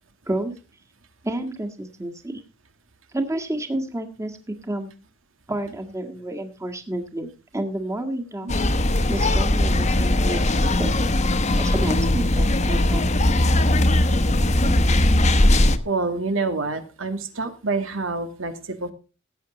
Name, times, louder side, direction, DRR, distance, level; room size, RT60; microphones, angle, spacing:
voice 1, 1.2-2.3 3.1-4.9 5.5-8.5 9.1-10.4 10.8-10.9 11.6-13.1, right 1 dB, 15° right, 4 dB, 1.6 m, -30 dB
sound 1, 8.5-15.8, left 1 dB, 35° left, 1.1 m, -19 dB
voice 2, 15.8-18.9, right 3 dB, 90° right, 7 dB, 2.2 m, -27 dB
17.5 x 8.4 x 4.0 m, 0.33 s
head